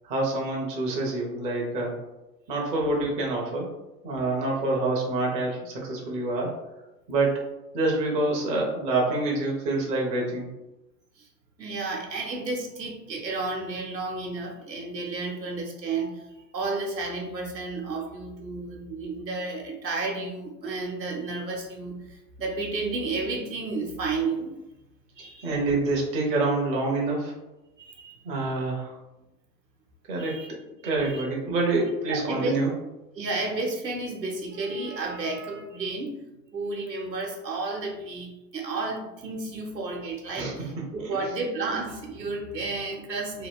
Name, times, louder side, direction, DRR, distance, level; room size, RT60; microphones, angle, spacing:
voice 1, 0.0-2.0 2.5-3.7 4.0-6.5 7.1-7.4 7.7-10.5 25.4-27.3 28.2-28.9 30.1-30.4 30.8-32.7 40.4-40.5 41.0-41.1, right 2 dB, 15° right, -1 dB, 0.4 m, -26 dB
voice 2, 11.6-24.6 25.2-25.6 27.8-28.2 30.2-30.5 31.0-31.2 32.1-32.5 33.1-36.2 36.5-43.5, right 3 dB, 85° right, 0 dB, 0.8 m, -32 dB
2.8 x 2.3 x 3.4 m, 0.98 s
figure-of-eight pair, 85°, 49 cm